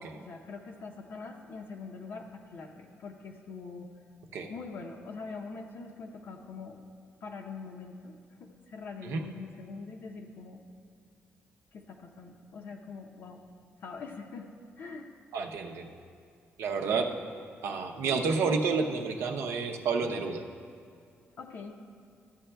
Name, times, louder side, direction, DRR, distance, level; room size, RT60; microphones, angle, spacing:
voice 1, 0.0-3.9 4.5-6.8 7.2-8.1 8.4-10.6 11.7-13.4 13.8-15.1 16.9-17.1 21.4-21.8, left 4 dB, 55° left, 2 dB, 0.6 m, -43 dB
voice 2, 15.3-15.9 16.6-17.1 17.6-20.4, right 4 dB, 80° right, 3 dB, 0.7 m, -30 dB
14.0 x 9.7 x 2.2 m, 2.4 s
wide cardioid pair, 175°, 4 cm